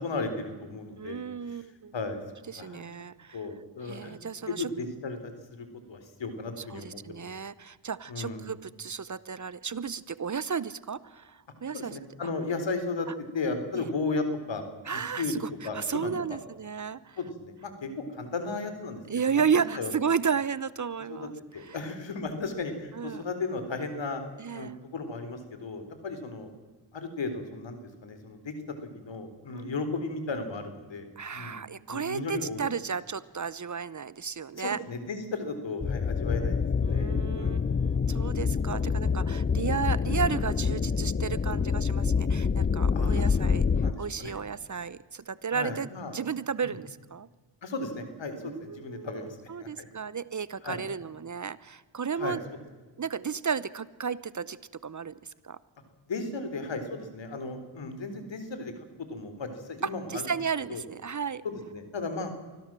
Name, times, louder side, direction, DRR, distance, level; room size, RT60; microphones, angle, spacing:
voice 1, 0.0-1.3 1.9-2.2 2.6-2.8 3.3-4.2 4.5-7.2 8.1-8.4 11.7-13.1 13.3-14.6 14.9-16.1 17.2-19.0 19.3-19.4 19.7-19.9 21.1-24.2 24.5-26.5 26.9-28.5 28.8-31.1 31.3-31.6 31.9-32.6 34.6-37.7 38.7-38.8 39.1-39.2 42.9-43.3 43.6-44.3 45.5-46.1 46.6-46.8 47.6-49.9 50.6-50.8 52.2-52.4 56.1-58.7 59.0-60.3 60.7-60.8 61.4-62.3, left 3 dB, 70° left, 8 dB, 3.9 m, -35 dB
voice 2, 1.0-1.9 2.5-3.4 3.8-4.7 6.6-12.0 13.7-13.8 14.9-17.2 19.1-21.3 21.7-21.8 22.9-23.3 24.4-24.8 29.5-29.8 31.2-34.8 36.8-43.7 44.0-47.3 48.4-52.4 53.0-54.6 54.8-55.2 55.4-55.6 59.8-61.4, right 6 dB, 40° right, 18 dB, 0.9 m, -33 dB
sound 1, 35.8-43.9, left 5 dB, 25° left, 0.6 m, -26 dB
24.5 x 16.0 x 7.6 m, 1.3 s
cardioid pair, 60°, 46 cm